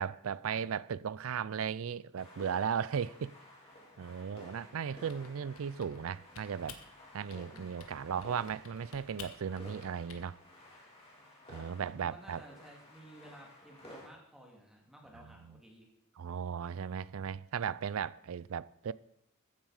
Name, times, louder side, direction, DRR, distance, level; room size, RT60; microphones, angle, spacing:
voice 1, 0.0-3.3 4.0-6.8 7.1-10.4 11.5-12.4 15.3-15.6 16.2-18.9, right 7 dB, 65° right, 0.4 m, -36 dB
sound 1, 2.2-14.1, left 1 dB, 25° left, 3.5 m, -54 dB
Typing, 4.9-6.1 6.4-6.9 7.3-8.0 8.2-10.2, left 6 dB, 70° left, 1.3 m, -52 dB
voice 2, 11.8-15.9, right 1 dB, ahead, 2.4 m, -55 dB
14.5 x 9.1 x 4.9 m
head